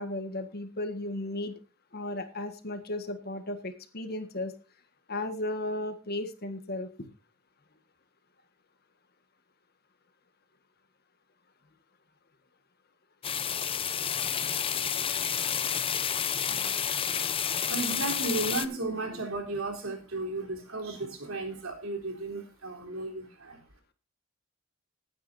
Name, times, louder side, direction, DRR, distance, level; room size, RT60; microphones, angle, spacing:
voice 1, 0.0-1.6 1.9-4.5 5.1-6.9, left 1 dB, 45° left, 8 dB, 1.6 m, -35 dB
sound 1, 13.2-18.7, left 8 dB, 25° left, 0.7 m, -30 dB
voice 2, 16.5-23.6, right 2 dB, 80° right, 2 dB, 3.7 m, -35 dB
20.0 x 9.6 x 2.7 m, 0.30 s
head